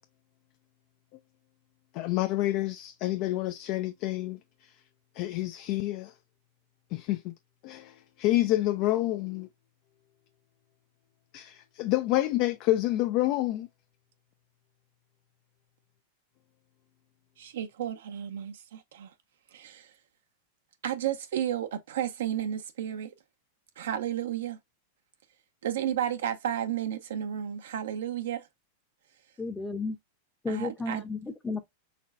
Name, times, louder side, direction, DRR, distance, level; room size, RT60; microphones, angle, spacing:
voice 1, 1.9-4.4 5.2-6.1 6.9-7.3 7.6-9.5 11.3-13.7, left 16 dB, 50° left, 0.4 m, -28 dB
voice 2, 17.4-19.1 19.5-19.9 20.8-23.1 23.8-24.6 25.6-28.4 30.5-31.0, right 10 dB, 80° right, 0.6 m, -32 dB
voice 3, 29.4-30.0 30.4-31.6, left 3 dB, 10° left, 0.7 m, -33 dB
4.2 x 3.1 x 2.5 m
hypercardioid pair, 115°, 0 cm